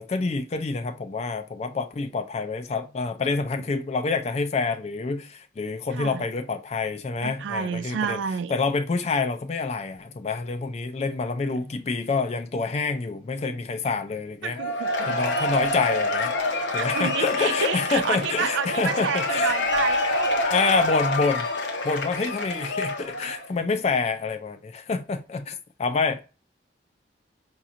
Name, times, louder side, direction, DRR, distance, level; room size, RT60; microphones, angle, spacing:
voice 1, 0.0-8.2 8.5-14.6 15.1-16.3 16.7-19.5 20.5-21.5 21.8-26.2, left 4 dB, 35° left, 0.3 m, -27 dB
voice 2, 5.9-6.2 7.2-8.5 14.4-15.2 16.7-20.3, right 7 dB, 80° right, 0.3 m, -30 dB
Cheering / Applause / Crowd, 14.6-23.5, left 2 dB, 75° left, 0.8 m, -26 dB
5.1 x 2.9 x 2.4 m
head